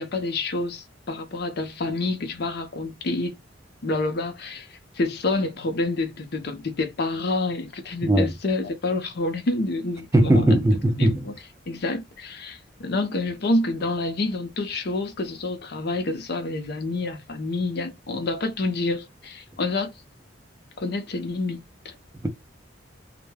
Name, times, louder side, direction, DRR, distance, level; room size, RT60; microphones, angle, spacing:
voice 1, 0.0-3.4 3.8-10.6 11.0-11.3 11.7-19.9 20.8-21.9, left 2 dB, 55° left, 0.6 m, -28 dB
voice 2, 10.1-11.3 22.2-22.3, right 1 dB, 15° right, 0.4 m, -19 dB
2.2 x 2.1 x 3.2 m
head